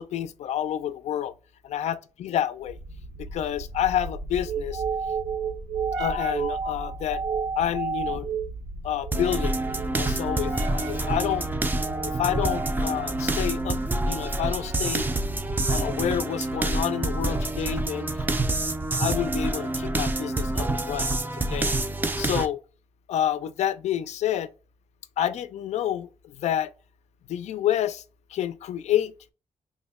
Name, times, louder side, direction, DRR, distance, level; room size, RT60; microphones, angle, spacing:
voice 1, 0.0-1.3 1.6-2.8 3.2-4.8 6.0-7.2 7.6-8.3 8.8-9.6 9.9-10.5 10.8-11.5 12.0-13.8 14.0-15.1 15.7-18.1 19.0-21.7 22.2-22.6 23.1-24.5 25.2-26.7 27.3-28.0 28.3-29.1, left 10 dB, 65° left, 0.4 m, -28 dB
sound 1, 2.7-16.0, right 4 dB, 90° right, 0.6 m, -33 dB
sound 2, 9.1-22.5, right 2 dB, 15° right, 0.3 m, -27 dB
3.4 x 2.1 x 3.5 m
cardioid pair, 110°, 12 cm